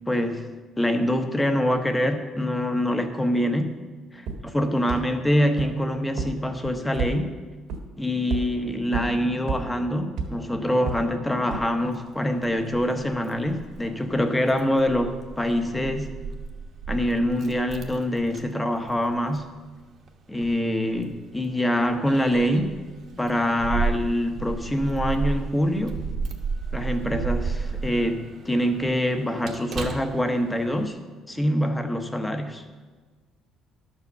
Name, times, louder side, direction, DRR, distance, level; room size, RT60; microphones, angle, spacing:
voice 1, 0.1-0.5 0.8-3.8 4.5-7.3 8.0-16.1 16.9-19.4 20.3-22.8 23.2-26.0 26.7-31.0 31.3-32.6, equal, 10° left, 7 dB, 0.9 m, -25 dB
sound 1, 4.3-4.4 4.9-5.0 5.6-5.7 6.2-6.3 6.6-7.1 7.7-7.8 8.3-8.4 8.9-9.0 9.5-9.6 10.2-10.3 10.9-11.0 11.5-11.6, right 6 dB, 80° right, 1.7 m, -27 dB
Keys jangling, 11.8-30.8, right 5 dB, 45° right, 1.1 m, -34 dB
12.0 x 4.9 x 6.7 m, 1.4 s
cardioid pair, 135°, 0 cm